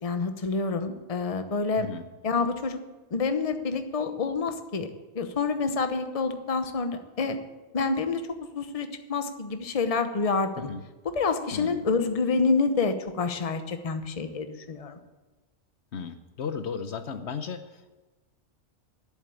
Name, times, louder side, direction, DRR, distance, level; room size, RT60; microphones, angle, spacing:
voice 1, 0.0-1.9 2.2-2.8 3.1-7.4 7.7-8.2 8.5-10.7 11.2-15.0, left 4 dB, 35° left, 8 dB, 1.0 m, -28 dB
voice 2, 1.8-2.1 10.6-10.8 11.5-11.8 15.9-17.9, left 6 dB, 70° left, 9 dB, 1.1 m, -35 dB
11.0 x 8.4 x 8.5 m, 1.2 s
omnidirectional pair, 1.2 m